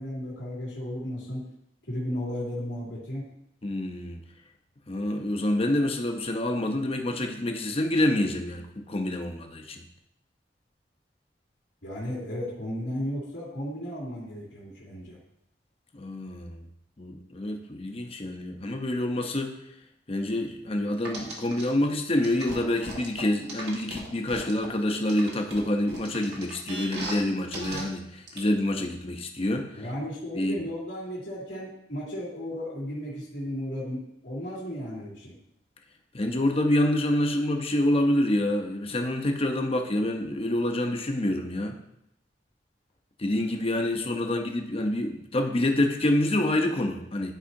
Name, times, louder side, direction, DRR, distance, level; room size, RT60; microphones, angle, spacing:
voice 1, 0.0-1.4 1.9-3.2 11.8-15.2 29.8-35.4 44.2-44.3, equal, 85° left, -6 dB, 2.6 m, -34 dB
voice 2, 3.6-4.2 4.9-9.8 15.9-16.6 17.0-19.5 20.1-29.7 30.4-30.6 36.1-41.8 43.2-47.3, left 1 dB, 35° left, 4 dB, 0.8 m, -27 dB
sound 1, 21.0-21.6 22.2-24.7 25.1-27.2 27.5-27.8 28.3-28.4, right 2 dB, 70° right, 1.7 m, -37 dB
11.5 x 4.8 x 2.7 m, 0.78 s
head